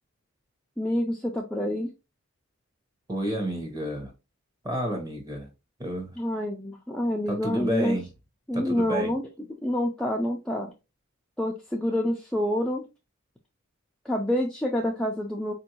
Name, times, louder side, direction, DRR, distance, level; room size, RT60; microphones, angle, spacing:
voice 1, 0.8-1.9 6.2-8.0 8.5-9.2 9.6-10.7 11.4-12.8 14.0-15.5, left 1 dB, 5° left, 0.4 m, -27 dB
voice 2, 3.1-4.1 4.6-5.5 5.8-6.1 7.3-8.1 8.5-9.1, equal, 20° right, 1.0 m, -30 dB
4.5 x 2.6 x 2.8 m
head